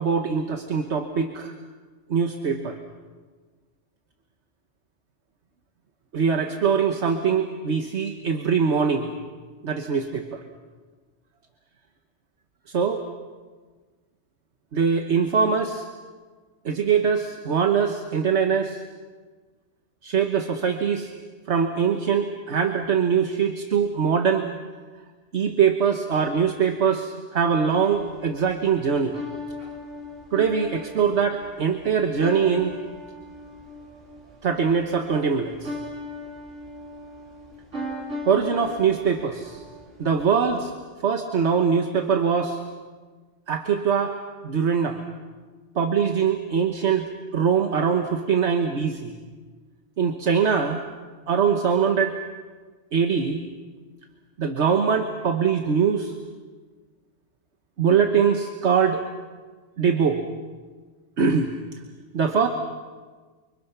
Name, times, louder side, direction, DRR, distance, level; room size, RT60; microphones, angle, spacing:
voice 1, 0.0-1.5 2.1-2.8 6.1-9.1 9.6-10.4 12.7-13.0 14.7-15.8 16.6-18.8 20.0-21.1 21.5-24.5 25.3-29.2 30.3-32.7 34.4-35.7 38.3-39.6 40.0-40.7 41.0-42.6 43.5-44.1 44.4-45.0 45.7-49.2 50.0-50.8 51.3-52.1 52.9-53.4 54.4-56.1 57.8-59.0 59.8-60.2 61.2-61.5 62.1-62.5, right 6 dB, 70° right, 5 dB, 1.5 m, -22 dB
sound 1, 27.8-40.8, left 1 dB, 90° right, 3.6 m, -39 dB
29.5 x 25.0 x 5.9 m, 1.4 s
omnidirectional pair, 1.2 m